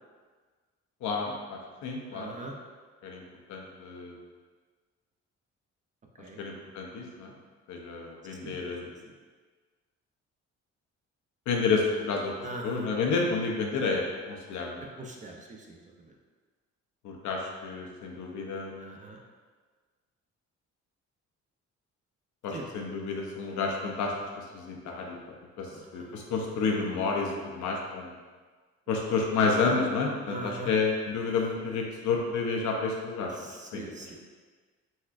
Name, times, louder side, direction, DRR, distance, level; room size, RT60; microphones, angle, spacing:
voice 1, 1.0-2.3 3.0-3.2 3.5-4.1 6.4-7.3 7.7-8.8 11.5-12.3 12.6-14.8 17.0-19.0 22.4-24.1 24.5-25.2 25.6-25.7 25.9-28.1 28.9-33.3 33.7-33.8, left 4 dB, 75° left, 0 dB, 0.6 m, -30 dB
voice 2, 2.1-2.5 6.2-6.4 8.4-8.5 8.8-8.9 12.4-12.9 15.0-15.8 18.8-19.2 22.5-22.6 25.7-26.1 29.1-29.2 30.3-30.7 33.4-34.1, right 2 dB, 25° right, 0 dB, 0.4 m, -41 dB
4.1 x 2.3 x 2.4 m, 1.4 s
cardioid pair, 90°, 30 cm